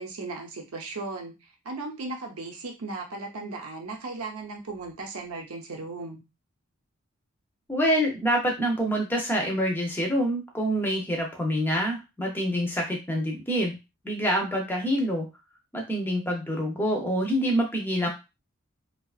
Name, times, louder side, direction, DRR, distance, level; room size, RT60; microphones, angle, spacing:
voice 1, 0.0-6.2 17.8-18.1, right 3 dB, 80° right, 2 dB, 0.7 m, -37 dB
voice 2, 7.7-13.7 14.0-15.3 15.7-18.1, equal, 10° left, 0 dB, 0.5 m, -26 dB
2.6 x 2.3 x 2.3 m, 0.26 s
head